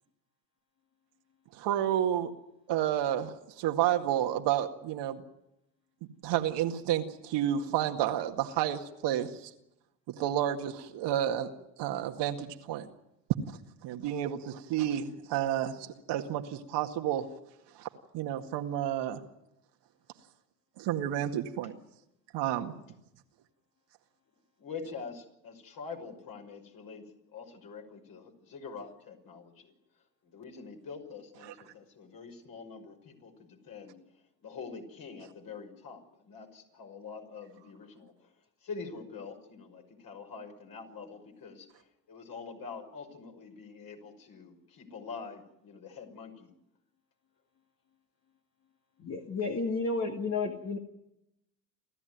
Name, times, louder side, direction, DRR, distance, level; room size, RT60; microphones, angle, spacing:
voice 1, 1.5-2.3 2.7-5.2 6.2-9.5 10.1-11.5 11.8-12.9 13.8-17.3 17.8-17.9 18.1-19.2 20.8-21.7 22.3-22.7 31.5-31.6, right 11 dB, 65° right, 5 dB, 2.1 m, -30 dB
voice 2, 24.6-29.7 30.2-38.3 38.6-46.5, left 5 dB, 50° left, 3 dB, 6.0 m, -45 dB
voice 3, 49.0-50.8, left 3 dB, 35° left, 3 dB, 2.3 m, -32 dB
29.5 x 13.5 x 9.3 m, 0.86 s
hypercardioid pair, 80°, 46 cm